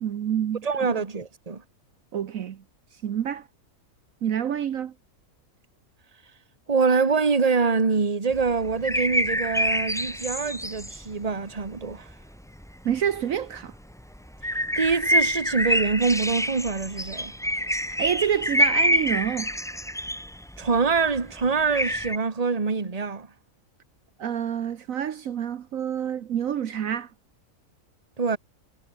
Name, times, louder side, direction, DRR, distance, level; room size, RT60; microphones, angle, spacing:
voice 1, 0.0-1.0 2.1-2.6 3.0-3.5 4.2-4.9 12.8-13.7 17.7-19.5 24.2-27.1, right 9 dB, 65° right, 1.3 m, -28 dB
voice 2, 0.6-1.6 6.7-12.1 14.8-17.3 20.6-23.3 28.2-28.4, right 4 dB, 25° right, 1.5 m, -25 dB
sound 1, 8.3-11.2 11.6-12.1 12.5-13.1 13.6-22.2, equal, ahead, 1.5 m, -26 dB
omnidirectional pair, 1.6 m